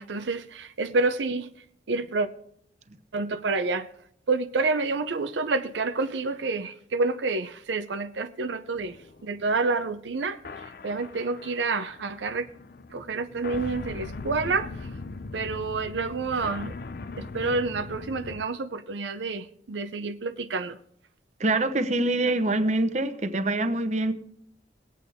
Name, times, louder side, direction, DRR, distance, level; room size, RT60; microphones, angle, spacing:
voice 1, 0.0-1.5 1.9-2.3 3.1-3.9 4.3-9.0 9.2-12.5 12.9-14.9 15.3-16.7 17.2-20.8, right 3 dB, 85° right, 0.6 m, -28 dB
sound 1, 8.7-18.4, left 3 dB, 55° left, 0.5 m, -40 dB
voice 2, 21.4-24.1, right 2 dB, 40° right, 0.9 m, -25 dB
20.5 x 8.4 x 3.5 m
head